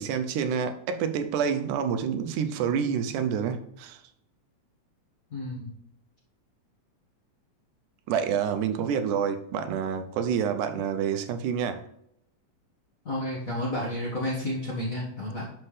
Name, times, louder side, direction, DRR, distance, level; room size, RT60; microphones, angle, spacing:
voice 1, 0.0-4.0 8.1-11.8, right 7 dB, 90° right, 8 dB, 2.2 m, -28 dB
voice 2, 5.3-5.7 13.0-15.5, left 1 dB, 40° left, -6 dB, 1.2 m, -31 dB
11.0 x 4.3 x 3.3 m, 0.75 s
omnidirectional pair, 3.5 m